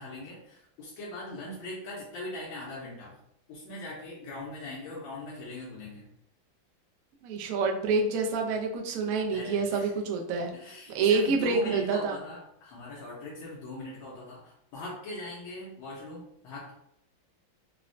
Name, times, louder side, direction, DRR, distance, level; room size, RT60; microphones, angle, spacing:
voice 1, 0.0-3.2 3.5-6.1 9.3-9.9 10.5-16.7, left 2 dB, 85° left, -5 dB, 1.5 m, -40 dB
voice 2, 7.2-10.5 10.9-12.2, right 4 dB, 80° right, 2 dB, 0.7 m, -27 dB
3.9 x 2.1 x 2.5 m, 0.75 s
omnidirectional pair, 2.1 m